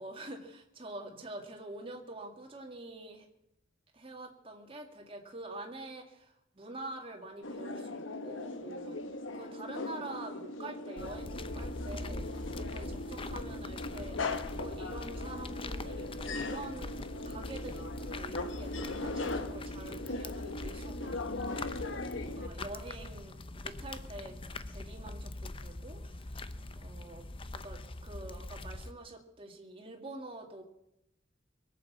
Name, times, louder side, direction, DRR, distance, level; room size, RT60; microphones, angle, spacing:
voice 1, 0.0-3.3 3.9-9.0 9.3-21.6 22.2-24.4 24.7-26.3 26.8-27.3 27.5-30.6, right 2 dB, 30° right, 2 dB, 2.3 m, -46 dB
sound 1, 7.4-22.5, left 2 dB, 80° left, 1.1 m, -39 dB
sound 2, 11.0-28.9, left 2 dB, 30° left, 0.7 m, -43 dB
23.0 x 8.3 x 7.4 m, 0.81 s
head